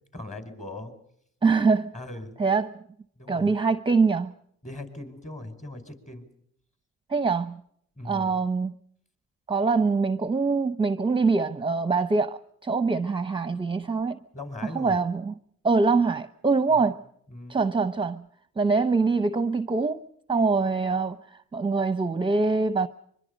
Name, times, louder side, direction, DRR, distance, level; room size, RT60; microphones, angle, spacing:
voice 1, 0.1-0.9 1.9-2.3 3.2-3.5 4.6-6.3 8.0-8.3 14.3-15.0 16.7-16.9 17.3-17.6, left 2 dB, 25° left, 5.1 m, -39 dB
voice 2, 1.4-1.9 2.4-2.7 3.3-4.3 7.1-7.6 8.0-8.7 9.5-14.2 14.6-15.3 15.6-17.0 17.5-18.2 18.6-20.0 20.3-22.9, right 4 dB, 15° right, 0.9 m, -24 dB
24.5 x 23.5 x 5.2 m
cardioid pair, 90°, 30 cm